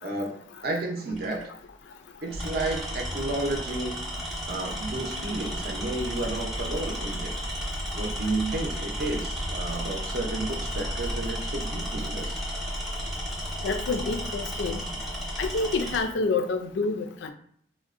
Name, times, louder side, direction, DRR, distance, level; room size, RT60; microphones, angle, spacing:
voice 1, 0.0-1.5 2.2-4.0 4.5-7.5 7.9-12.4, right 2 dB, 55° right, 1 dB, 0.5 m, -32 dB
Tools, 1.1-1.4 2.3-16.1, equal, ahead, 0.6 m, -33 dB
voice 2, 13.6-14.8 15.4-17.3, left 3 dB, 80° left, 8 dB, 0.3 m, -28 dB
3.6 x 2.0 x 2.4 m, 0.62 s
head